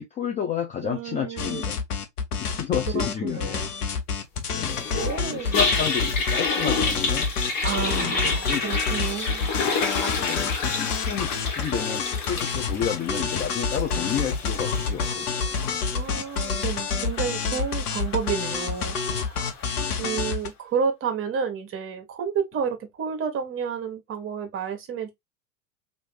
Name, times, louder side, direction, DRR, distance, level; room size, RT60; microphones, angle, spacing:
voice 1, 0.0-1.8 2.4-3.6 4.5-4.9 5.2-7.3 7.9-8.6 10.2-15.9 19.8-20.1, left 8 dB, 15° left, 0.5 m, -31 dB
voice 2, 0.8-1.7 2.9-3.7 4.9-5.6 7.6-9.5 15.9-19.4 20.0-25.1, right 6 dB, 30° right, 1.1 m, -30 dB
sound 1, 1.4-6.4 6.7-20.5, left 5 dB, 75° left, 1.0 m, -28 dB
Toilet flush, 4.7-19.9, left 4 dB, 40° left, 1.5 m, -30 dB
3.1 x 2.7 x 3.1 m
figure-of-eight pair, 85°, 46 cm